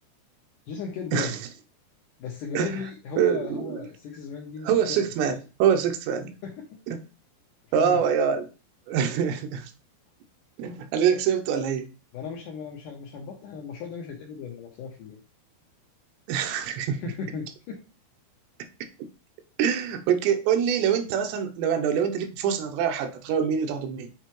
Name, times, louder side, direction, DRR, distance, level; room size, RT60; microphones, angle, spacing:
voice 1, 0.7-1.4 2.2-5.1 6.4-6.8 7.7-8.0 12.1-15.2 17.0-17.8, left 6 dB, 80° left, 1.9 m, -36 dB
voice 2, 3.2-3.8 4.6-6.3 6.9-7.0 7.7-8.5 8.9-9.7 10.6-11.9 16.3-17.0 19.6-24.1, right 8 dB, 85° right, 3.0 m, -25 dB
7.8 x 4.5 x 3.0 m
omnidirectional pair, 4.8 m